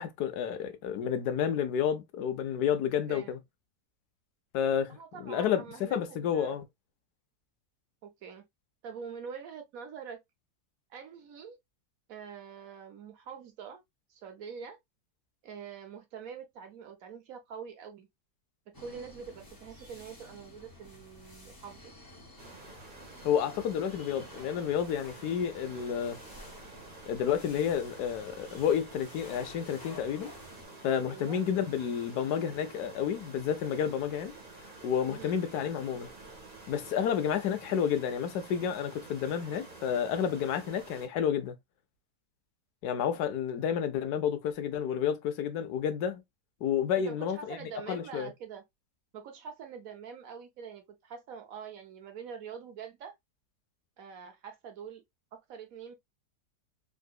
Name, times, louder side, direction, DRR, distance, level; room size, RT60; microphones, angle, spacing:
voice 1, 0.0-3.4 4.5-6.7 23.2-26.2 27.1-30.3 30.8-34.3 34.8-36.1 36.7-41.5 42.8-46.2 46.6-48.3, left 8 dB, 90° left, 1.2 m, -30 dB
voice 2, 5.0-6.6 8.0-8.4 8.8-10.2 10.9-11.6 12.1-13.8 14.1-14.8 15.4-18.1 18.8-21.9 31.1-31.4 35.1-35.4 43.5-43.8 47.0-48.6 49.1-53.1 54.0-55.0 55.3-55.9, right 6 dB, 65° right, 1.2 m, -45 dB
sound 1, 18.7-30.6, left 1 dB, 15° left, 0.9 m, -52 dB
sound 2, 22.4-41.1, right 2 dB, 35° right, 1.1 m, -50 dB
3.8 x 2.7 x 2.3 m
omnidirectional pair, 1.6 m